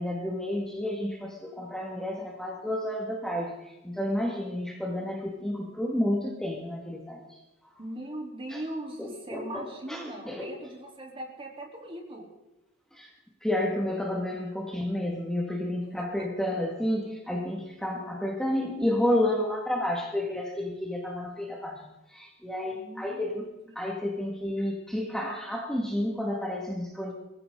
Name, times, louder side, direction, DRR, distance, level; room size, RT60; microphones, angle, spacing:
voice 1, 0.0-7.4 8.5-8.6 9.0-10.5 12.9-13.1 13.4-23.5 23.8-27.1, left 1 dB, 5° left, -1 dB, 1.8 m, -31 dB
voice 2, 7.8-12.3 22.7-23.3 23.7-23.8, right 1 dB, 30° right, 0 dB, 3.5 m, -39 dB
22.5 x 15.0 x 3.8 m, 1.0 s
head